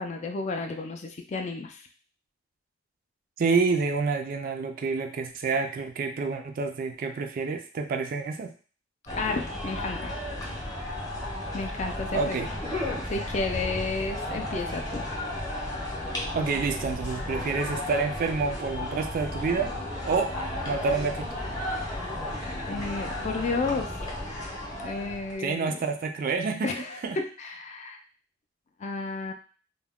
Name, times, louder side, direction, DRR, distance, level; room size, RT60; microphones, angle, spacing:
voice 1, 0.0-1.8 9.1-10.1 11.5-12.5 13.1-15.0 22.7-23.9 24.7-25.8 26.6-28.0 28.8-29.3, left 3 dB, 35° left, 4 dB, 0.3 m, -32 dB
voice 2, 3.4-8.5 12.1-12.5 16.3-19.7 20.0-20.3 20.7-21.3 25.4-27.2, right 4 dB, 45° right, 4 dB, 0.3 m, -28 dB
sound 1, 9.1-25.4, left 1 dB, 20° left, 0.7 m, -34 dB
2.2 x 2.1 x 3.5 m, 0.39 s
head